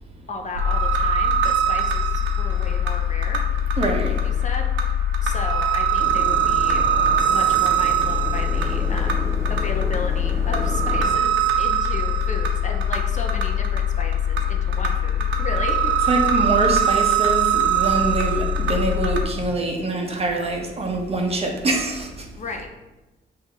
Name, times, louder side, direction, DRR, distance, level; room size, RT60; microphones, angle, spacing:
voice 1, 0.3-3.4 4.2-4.9 5.2-15.9 19.4-19.6 22.4-22.7, left 3 dB, 40° left, 3 dB, 0.6 m, -34 dB
sound 1, 0.5-19.2, right 1 dB, 75° right, 0.7 m, -21 dB
voice 2, 3.8-4.2 16.1-22.2, right 2 dB, 30° right, 1 dB, 0.9 m, -24 dB
sound 2, 6.0-11.2, right 2 dB, 15° right, 0.3 m, -34 dB
5.6 x 2.7 x 3.5 m, 1.1 s
cardioid pair, 90°, 20 cm